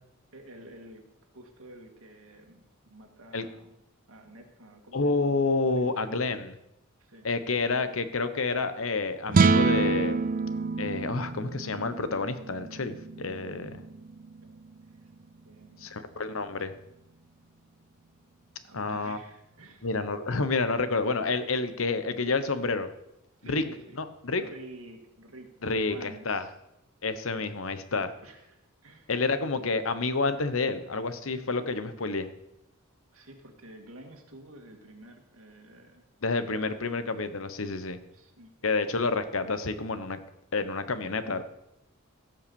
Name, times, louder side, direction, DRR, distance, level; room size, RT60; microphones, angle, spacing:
voice 1, 0.3-1.0 1.3-3.8 4.1-5.9 7.0-7.3 14.4-15.1 15.4-15.9 18.6-19.9 23.4-24.0 24.4-26.5 28.2-29.1 33.1-36.0 36.3-36.8 38.1-38.5, right 1 dB, 85° right, 3 dB, 2.2 m, -50 dB
voice 2, 4.9-6.6 7.2-10.2 10.8-13.8 15.8-16.7 18.7-19.2 19.8-22.9 23.5-23.6 24.0-24.4 25.6-26.4 27.0-28.1 29.1-32.3 36.2-38.0 38.6-40.2 40.5-41.4, left 3 dB, 70° left, 11 dB, 1.0 m, -29 dB
sound 1, 9.3-15.6, right 4 dB, 40° right, 0.4 m, -28 dB
16.5 x 5.6 x 7.0 m, 0.88 s
head